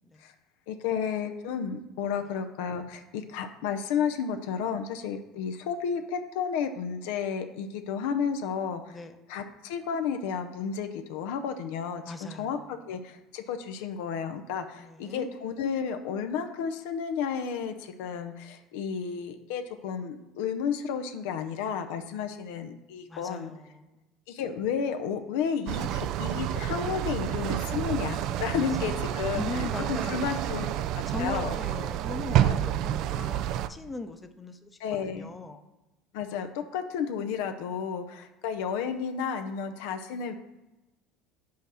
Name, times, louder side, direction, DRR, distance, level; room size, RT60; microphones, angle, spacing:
voice 1, 0.7-9.0 9.3-23.5 24.3-30.7 31.1-31.6 32.4-32.6 34.8-35.3 36.1-40.3, left 7 dB, 75° left, 6 dB, 0.6 m, -32 dB
voice 2, 12.1-12.6 14.8-15.3 23.1-23.9 28.5-28.9 29.4-30.7 31.1-35.6, left 3 dB, 20° left, 7 dB, 0.7 m, -39 dB
sound 1, 25.7-33.7, right 11 dB, 60° right, 0.3 m, -29 dB
5.7 x 4.2 x 6.2 m, 1.0 s
supercardioid pair, 90°, 0 cm